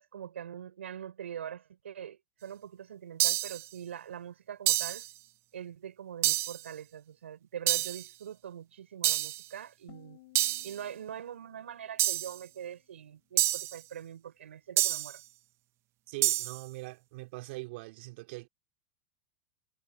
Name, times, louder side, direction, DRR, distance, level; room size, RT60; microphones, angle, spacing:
voice 1, 0.0-5.0 5.5-10.2 10.6-15.2, right 9 dB, 85° right, 6.5 m, -43 dB
sound 1, 3.2-3.6 4.7-5.1 6.2-6.6 7.7-8.1 9.0-9.4 10.4-10.8 12.0-12.4 13.4-13.8 14.8-15.2 16.2-16.6, right 15 dB, 45° right, 0.9 m, -28 dB
sound 2, 9.9-12.9, left 21 dB, 65° left, 5.7 m, -60 dB
voice 2, 16.1-18.5, right 23 dB, 65° right, 2.8 m, -42 dB
hypercardioid pair, 100°, 6 cm